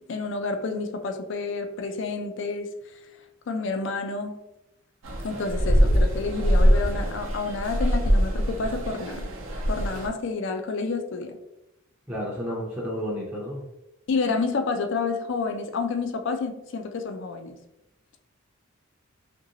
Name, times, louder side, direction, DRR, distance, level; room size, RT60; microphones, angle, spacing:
voice 1, 0.1-2.7 3.5-4.4 5.2-9.3 9.7-11.4 14.1-17.6, left 4 dB, 60° left, 0.4 m, -29 dB
sound 1, 5.0-10.1, equal, 65° right, 0.6 m, -23 dB
voice 2, 12.1-13.6, equal, 10° right, 0.5 m, -31 dB
2.8 x 2.6 x 2.8 m
head